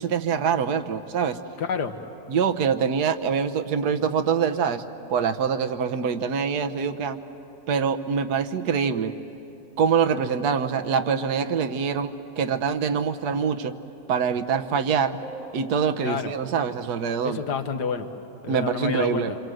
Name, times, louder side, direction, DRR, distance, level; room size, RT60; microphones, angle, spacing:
voice 1, 0.0-1.4 2.3-4.8 5.1-7.2 7.7-9.1 9.8-13.7 14.1-15.2 15.5-17.4 18.5-19.3, right 6 dB, 65° right, 7 dB, 1.4 m, -24 dB
voice 2, 1.6-1.9 16.0-16.3 17.2-18.1 18.4-19.4, left 5 dB, 70° left, 7 dB, 1.7 m, -28 dB
sound 1, 10.8-13.1 15.2-16.9, right 2 dB, 50° right, 1.3 m, -46 dB
27.5 x 26.5 x 7.8 m, 2.9 s
omnidirectional pair, 1.9 m